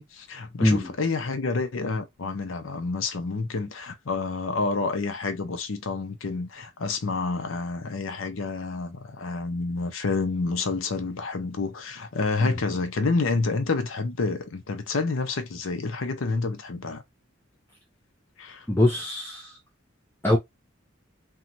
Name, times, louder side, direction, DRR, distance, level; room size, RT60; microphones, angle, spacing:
voice 1, 0.0-17.0 18.4-18.7, left 3 dB, 75° left, 0.6 m, -29 dB
voice 2, 0.6-0.9 12.4-12.6 18.7-19.6 20.2-20.4, left 1 dB, 10° left, 0.5 m, -23 dB
3.0 x 2.3 x 2.6 m
head